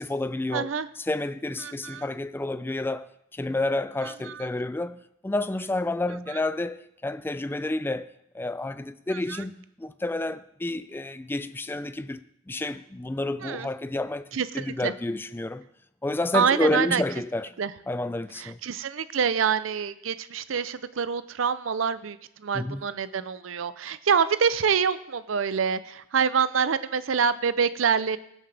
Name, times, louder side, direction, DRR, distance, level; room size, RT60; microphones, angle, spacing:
voice 1, 0.0-0.7 1.1-8.1 8.3-14.3 14.5-15.6 16.0-17.5 17.9-18.6 22.5-22.8, left 2 dB, 10° left, 0.3 m, -30 dB
voice 2, 0.5-0.9 1.6-2.1 4.0-4.5 6.3-6.4 9.1-9.4 13.4-13.7 14.3-14.9 16.3-17.0 17.6-17.7 18.4-28.2, right 6 dB, 90° right, 0.5 m, -26 dB
17.5 x 7.4 x 3.4 m
head